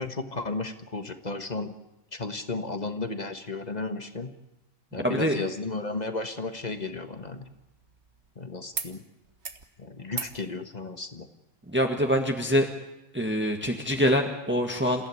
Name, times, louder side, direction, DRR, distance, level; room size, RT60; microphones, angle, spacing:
voice 1, 0.0-1.7 2.1-4.3 4.9-7.5 8.3-9.0 9.8-11.3, left 3 dB, 35° left, 8 dB, 1.5 m, -34 dB
voice 2, 5.0-5.4 11.7-12.7 13.1-15.1, equal, 10° right, 3 dB, 1.7 m, -25 dB
Desk Lamp, 6.6-8.3 8.7-8.9 9.2-9.7 10.1-10.4 11.7-11.8, right 5 dB, 60° right, 1.7 m, -39 dB
28.0 x 15.5 x 9.7 m, 0.98 s
omnidirectional pair, 1.3 m